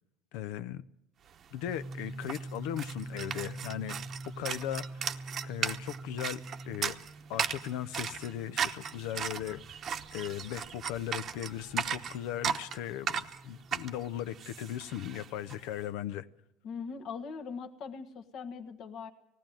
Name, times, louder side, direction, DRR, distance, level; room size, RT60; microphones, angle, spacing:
voice 1, 0.3-0.8 1.5-4.0 4.3-5.2 5.4-6.4 6.7-6.9 7.3-9.6 10.1-16.3, left 11 dB, 75° left, 0.8 m, -38 dB
sound 1, 1.4-1.5 1.7-15.6, right 7 dB, 40° right, 0.9 m, -37 dB
sound 2, 1.7-15.3, right 2 dB, 5° left, 1.1 m, -46 dB
voice 2, 16.6-19.1, left 5 dB, 55° left, 1.4 m, -41 dB
19.5 x 15.0 x 9.1 m
supercardioid pair, 120°, 0 cm